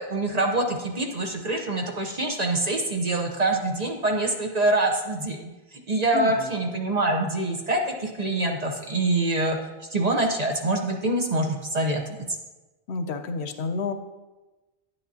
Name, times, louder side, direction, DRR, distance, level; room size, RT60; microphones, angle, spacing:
voice 1, 0.0-5.4 5.9-9.6 9.9-12.0, right 2 dB, 40° right, 2 dB, 0.9 m, -25 dB
voice 2, 6.1-6.5 12.9-13.9, left 4 dB, 90° left, 8 dB, 0.9 m, -30 dB
9.8 x 8.8 x 2.7 m, 1.1 s
omnidirectional pair, 1.1 m